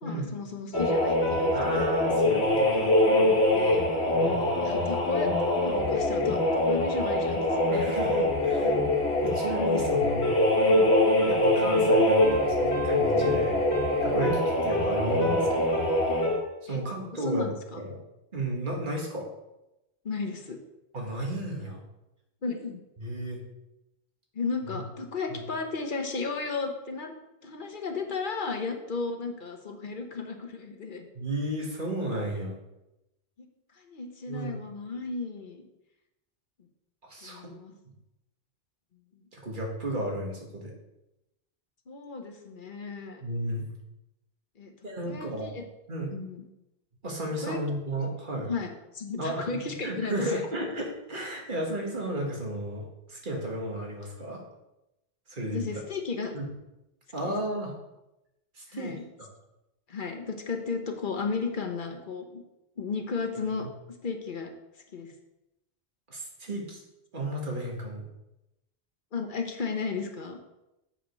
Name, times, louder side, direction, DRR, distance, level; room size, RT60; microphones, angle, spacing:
voice 1, 0.0-1.8 3.2-3.9 4.6-6.4 6.6-7.4 7.9-8.0 16.7-16.8 17.1-17.8 20.0-20.6 22.4-22.8 24.3-27.1 27.4-31.1 33.4-33.5 33.8-35.7 37.2-37.7 41.9-43.2 44.6-44.7 45.0-45.6 46.1-46.5 47.4-47.6 47.9-48.0 48.4-50.4 55.5-56.4 57.2-57.4 58.7-59.0 59.9-62.4 62.8-63.7 64.0-64.5 64.9-65.1 69.1-70.4, left 4 dB, 55° left, 4 dB, 1.1 m, -34 dB
sound 1, 0.7-16.4, left 1 dB, 75° left, 1.5 m, -24 dB
voice 2, 1.5-2.9 4.1-4.5 7.7-8.8 9.2-10.3 11.3-13.6 14.0-15.8 16.6-17.5 17.8-18.0 18.3-19.3 20.9-21.8 23.0-23.4 24.7-24.8 25.3-25.4 31.1-32.5 34.3-34.5 37.0-37.5 39.3-40.7 43.2-43.7 44.8-45.5 45.9-46.1 47.0-48.5 49.2-49.5 49.8-54.4 55.3-55.6 56.3-56.5 57.1-57.7 58.6-59.3 63.4-63.7 66.1-66.8 67.1-68.0, right 1 dB, 50° right, -1 dB, 1.8 m, -33 dB
7.4 x 5.1 x 5.2 m, 0.92 s
omnidirectional pair, 1.1 m